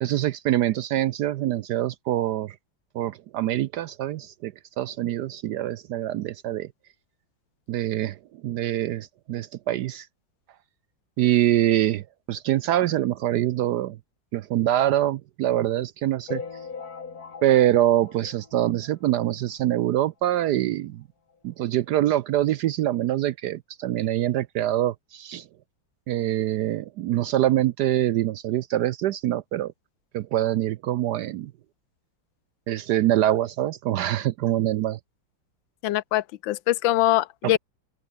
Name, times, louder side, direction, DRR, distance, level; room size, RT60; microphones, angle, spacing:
voice 1, 0.0-2.5 2.9-6.7 7.7-8.2 8.4-10.1 11.2-14.0 14.3-16.4 17.4-21.0 21.4-25.4 26.1-29.7 30.1-31.5 32.7-35.0 37.4-37.6, right 13 dB, 75° right, 1.0 m, -24 dB
sound 1, 16.3-19.1 19.6-19.7 19.9-20.0 20.3-20.4 21.3-21.4 21.9-22.0, left 5 dB, 50° left, 2.6 m, -39 dB
voice 2, 35.8-37.6, left 14 dB, 75° left, 1.4 m, -23 dB
open air
omnidirectional pair, 2.1 m